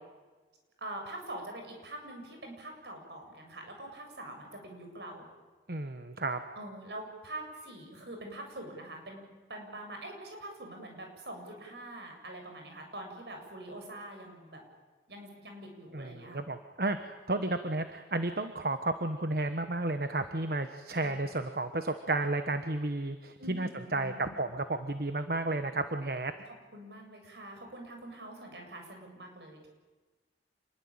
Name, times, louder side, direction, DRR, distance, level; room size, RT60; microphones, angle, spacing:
voice 1, 0.8-5.3 6.6-14.6 15.1-16.4 20.9-21.2 23.4-24.3 26.7-29.7, right 1 dB, 75° right, 3 dB, 7.6 m, -44 dB
voice 2, 5.7-6.4 15.9-26.3, right 2 dB, 55° right, 9 dB, 1.3 m, -32 dB
27.5 x 21.5 x 9.0 m, 1.3 s
head